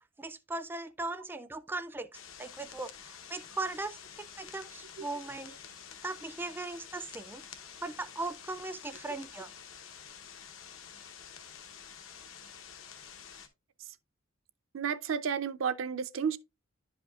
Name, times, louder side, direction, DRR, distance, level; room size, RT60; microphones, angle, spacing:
voice 1, 0.2-2.1 2.4-5.6 6.0-7.4 7.8-9.5, right 2 dB, 10° right, 0.3 m, -38 dB
sound 1, 2.1-13.5, left 7 dB, 85° left, 1.0 m, -49 dB
voice 2, 14.7-16.4, right 7 dB, 75° right, 0.5 m, -32 dB
10.5 x 5.1 x 2.3 m
head